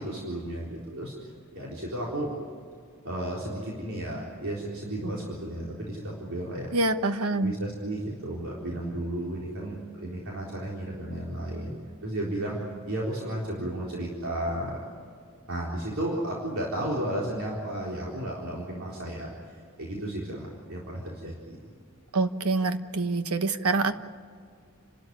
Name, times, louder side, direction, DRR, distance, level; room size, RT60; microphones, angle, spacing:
voice 1, 0.0-2.3 3.0-6.7 7.3-11.7 12.0-12.6 12.9-14.9 15.5-21.6, right 1 dB, 65° right, -4 dB, 4.1 m, -33 dB
voice 2, 6.7-7.5 22.1-23.9, right 3 dB, 90° right, 10 dB, 1.2 m, -26 dB
30.0 x 13.0 x 9.6 m, 2.1 s
head